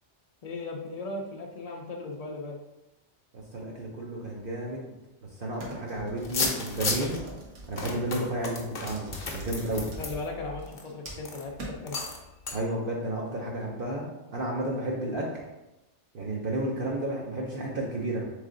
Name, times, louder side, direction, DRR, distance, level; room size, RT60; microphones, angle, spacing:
voice 1, 0.4-2.6 10.0-12.0, left 2 dB, 85° left, 0 dB, 0.3 m, -37 dB
voice 2, 3.5-4.9 5.4-7.2 7.7-9.9 12.5-15.3 16.1-18.3, right 1 dB, 55° right, -3 dB, 0.8 m, -32 dB
sound 1, 5.5-7.9 8.9-10.2 10.6-11.3 11.6-11.7, right 2 dB, 75° right, 1.3 m, -41 dB
sound 2, 6.2-7.2 7.8-10.8 11.2-11.4 11.9-12.2 12.5-12.6, left 4 dB, 50° left, 0.7 m, -33 dB
3.7 x 3.3 x 3.7 m, 0.96 s
omnidirectional pair, 1.3 m